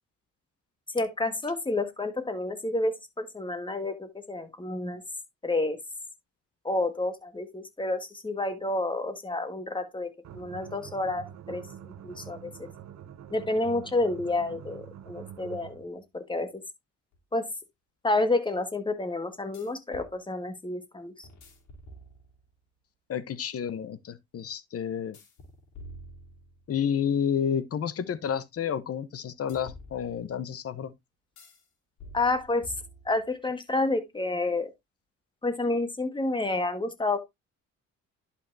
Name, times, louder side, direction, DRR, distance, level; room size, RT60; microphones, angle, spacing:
voice 1, 0.9-5.0 5.4-5.8 6.6-12.7 13.3-16.6 17.3-17.5 18.0-21.3 32.1-32.6 33.0-34.7 35.4-37.2, left 2 dB, 15° left, 1.7 m, -29 dB
sound 1, 10.2-15.9, right 9 dB, 65° right, 1.1 m, -45 dB
sound 2, 17.1-17.2 19.5-20.1 21.2-22.5 25.1-26.8 29.5-30.5 31.4-31.7 32.0-33.3, right 1 dB, 70° left, 3.2 m, -48 dB
voice 2, 23.1-25.2 26.7-30.9, left 8 dB, 50° left, 1.0 m, -30 dB
11.0 x 5.6 x 2.7 m
cardioid pair, 90°, 30 cm